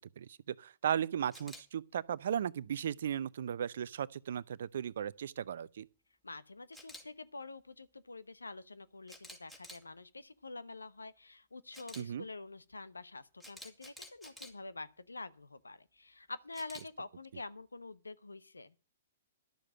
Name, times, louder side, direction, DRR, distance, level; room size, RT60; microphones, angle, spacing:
voice 1, 0.2-5.9 12.0-12.2, right 9 dB, 65° right, 0.6 m, -36 dB
Camera, 1.3-1.6 6.7-7.0 9.1-9.8 11.7-12.0 13.4-14.5 16.5-16.8, left 1 dB, 5° left, 2.8 m, -50 dB
voice 2, 6.2-18.7, left 3 dB, 90° left, 0.9 m, -47 dB
12.0 x 6.8 x 8.7 m
hypercardioid pair, 120°, 0 cm